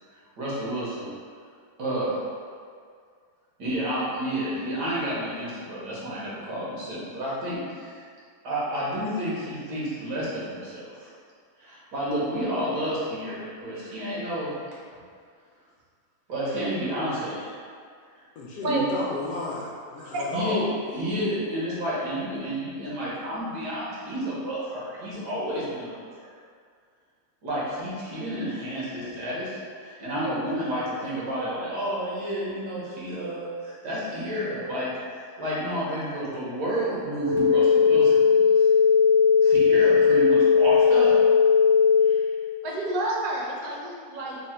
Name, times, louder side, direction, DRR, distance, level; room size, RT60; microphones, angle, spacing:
voice 1, 0.4-1.1 1.8-2.1 3.6-8.0 8.4-11.1 11.6-14.5 16.3-17.6 18.7-18.8 20.3-26.3 27.4-38.7 39.4-41.2 42.0-42.3, equal, 90° right, -7 dB, 1.7 m, -30 dB
voice 2, 18.4-20.7, left 2 dB, 65° left, -5 dB, 0.9 m, -33 dB
sound 1, 37.2-42.2, left 6 dB, 40° right, 0.4 m, -18 dB
voice 3, 42.6-44.4, right 1 dB, 70° right, -2 dB, 1.0 m, -29 dB
3.7 x 2.2 x 4.2 m, 2.1 s
omnidirectional pair, 1.7 m